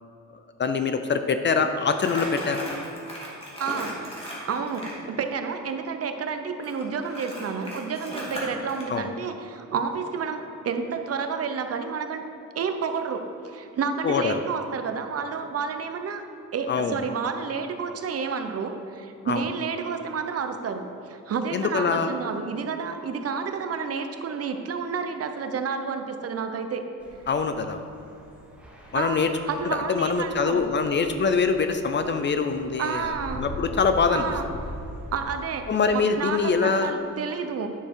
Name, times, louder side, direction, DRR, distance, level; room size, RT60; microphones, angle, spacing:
voice 1, 0.6-2.7 8.9-9.1 14.0-14.4 16.7-17.0 19.2-19.4 21.5-22.1 27.3-27.8 28.9-29.3 29.6-34.3 35.7-36.9, left 5 dB, 35° left, 8 dB, 0.5 m, -24 dB
Crumpling crinkling, 1.9-5.0 6.6-8.9, equal, 15° left, 2.2 m, -37 dB
voice 2, 3.6-4.1 4.5-12.2 12.5-16.2 16.5-26.8 28.9-29.2 29.5-30.6 32.8-33.4 34.1-34.5 35.1-37.7, right 5 dB, 45° right, 7 dB, 0.7 m, -30 dB
sound 1, 27.0-35.9, equal, 5° right, 1.5 m, -41 dB
10.0 x 6.8 x 4.6 m, 2.7 s
cardioid pair, 130°, 33 cm